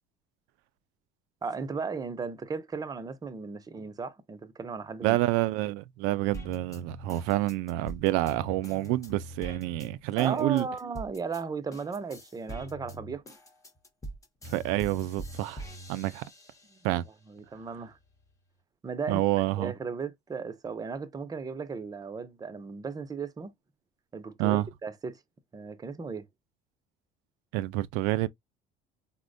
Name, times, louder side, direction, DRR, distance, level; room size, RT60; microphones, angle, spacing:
voice 1, 1.4-5.2 10.2-13.2 16.7-17.0 17.3-18.0 18.8-19.2 19.6-23.5 24.1-25.2 25.5-26.3, right 5 dB, 20° right, 0.5 m, -36 dB
voice 2, 5.0-10.7 14.4-15.6 15.9-16.2 16.8-17.1 19.1-19.7 24.4-24.7 27.5-28.3, right 16 dB, 90° right, 0.4 m, -28 dB
sound 1, 6.3-11.4 11.7-16.9 17.4-18.3, right 1 dB, 15° left, 0.7 m, -43 dB
4.2 x 2.0 x 2.5 m
cardioid pair, 120°, 19 cm